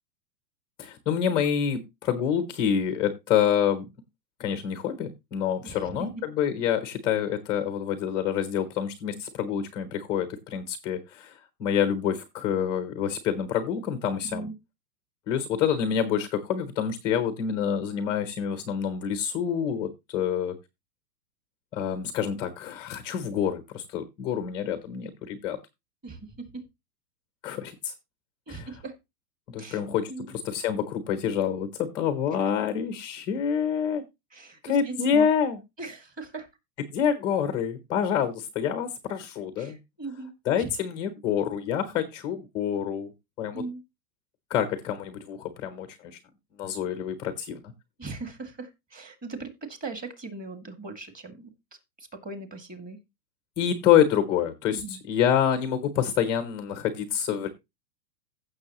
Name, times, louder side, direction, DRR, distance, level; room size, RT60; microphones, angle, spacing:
voice 1, 0.8-3.9 4.4-14.5 15.3-20.5 21.7-25.6 27.4-27.9 28.5-28.7 29.5-34.0 34.6-35.6 36.9-39.8 40.5-43.1 43.4-43.6 44.5-46.2 46.6-47.7 53.6-57.5, left 8 dB, 10° left, 9 dB, 0.5 m, -27 dB
voice 2, 5.6-6.2 14.2-14.5 26.0-26.6 28.5-29.0 29.6-29.8 30.1-30.3 32.6-32.7 34.3-35.3 35.8-36.5 39.6-40.7 43.5-43.8 48.0-51.5 52.0-53.0 54.7-55.0, right 3 dB, 15° right, 7 dB, 1.9 m, -39 dB
15.5 x 6.5 x 2.9 m, 0.23 s
hypercardioid pair, 155°, 50 cm